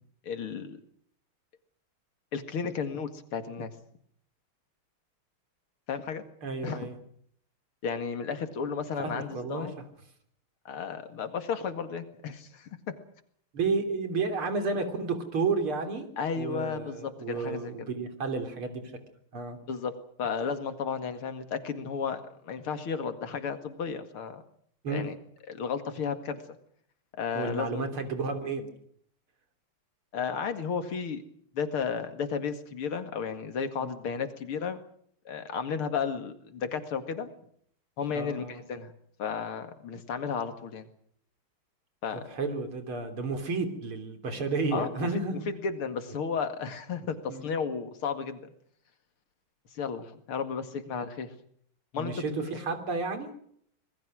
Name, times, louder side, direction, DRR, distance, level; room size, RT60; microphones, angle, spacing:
voice 1, 0.2-0.8 2.3-3.7 5.9-6.2 6.6-6.9 7.8-9.7 10.6-13.0 16.2-17.9 19.7-19.9 20.2-24.4 24.9-25.2 25.5-26.4 27.2-27.9 30.1-31.2 31.5-34.8 35.3-37.3 38.0-38.9 39.2-40.9 42.0-42.4 44.7-48.4 49.7-51.3 51.9-52.2, left 6 dB, 90° left, 9 dB, 3.0 m, -33 dB
voice 2, 6.4-7.0 9.0-9.7 13.5-16.1 16.4-18.8 19.3-19.6 24.8-25.1 27.3-28.7 33.8-33.9 38.1-38.6 42.3-45.5 47.3-47.4 52.0-53.3, right 4 dB, 85° right, 7 dB, 4.1 m, -31 dB
26.0 x 20.5 x 6.3 m, 0.65 s
omnidirectional pair, 2.3 m